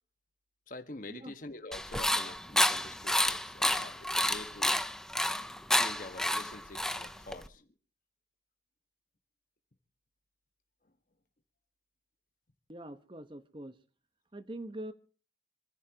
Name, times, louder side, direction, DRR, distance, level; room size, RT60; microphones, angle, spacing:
voice 1, 0.7-4.9 5.7-7.7, left 2 dB, 50° left, 1.5 m, -46 dB
sound 1, 1.7-7.5, left 1 dB, 5° left, 0.8 m, -30 dB
voice 2, 12.7-13.8 14.3-14.9, right 1 dB, 30° right, 1.2 m, -43 dB
26.0 x 14.5 x 3.0 m
head